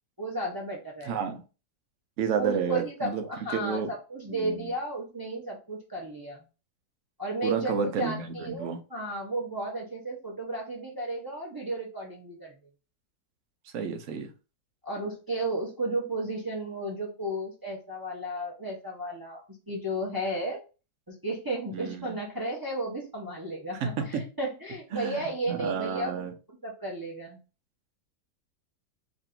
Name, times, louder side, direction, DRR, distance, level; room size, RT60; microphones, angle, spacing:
voice 1, 0.2-1.2 2.4-6.4 7.2-12.6 14.8-20.6 21.1-26.3 26.6-27.4, right 1 dB, 30° right, -2 dB, 0.3 m, -33 dB
voice 2, 1.0-1.4 2.2-3.2 3.5-3.9 4.3-4.7 7.4-8.8 13.7-14.3 21.7-22.1 23.8-24.2 24.9-26.3, right 6 dB, 60° right, 5 dB, 0.9 m, -31 dB
2.9 x 2.6 x 4.3 m, 0.33 s
omnidirectional pair, 1.9 m